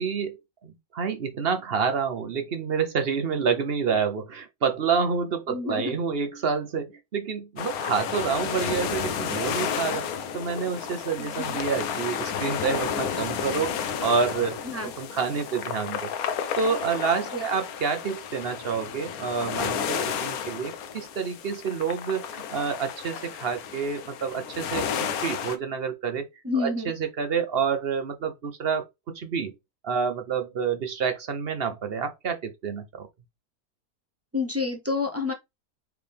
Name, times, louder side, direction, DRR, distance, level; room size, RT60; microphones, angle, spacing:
voice 1, 0.0-10.0 10.3-16.1 16.6-26.3 26.5-28.9 29.1-29.5 29.8-33.1, right 6 dB, 50° right, 0.8 m, -28 dB
voice 2, 5.5-5.9 11.2-11.6 14.6-14.9 17.3-17.4 26.4-26.9 34.3-35.3, left 3 dB, 20° right, 0.4 m, -29 dB
sound 1, 7.6-25.6, left 8 dB, 75° left, 1.2 m, -32 dB
4.8 x 3.3 x 3.3 m
omnidirectional pair, 1.6 m